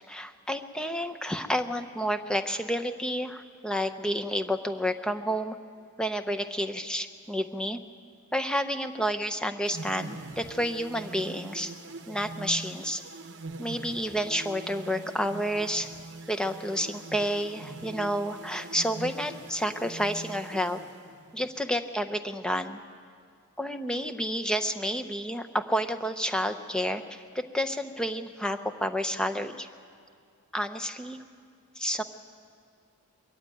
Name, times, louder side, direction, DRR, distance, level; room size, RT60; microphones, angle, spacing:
voice 1, 0.1-5.6 6.0-7.8 8.3-11.7 12.1-13.0 13.6-15.9 16.3-20.8 21.3-22.8 23.6-29.7 30.5-31.2 31.8-32.0, equal, 5° left, 7 dB, 0.6 m, -30 dB
sound 1, 9.6-21.5, right 2 dB, 55° right, 0.9 m, -43 dB
22.0 x 14.5 x 9.1 m, 2.2 s
head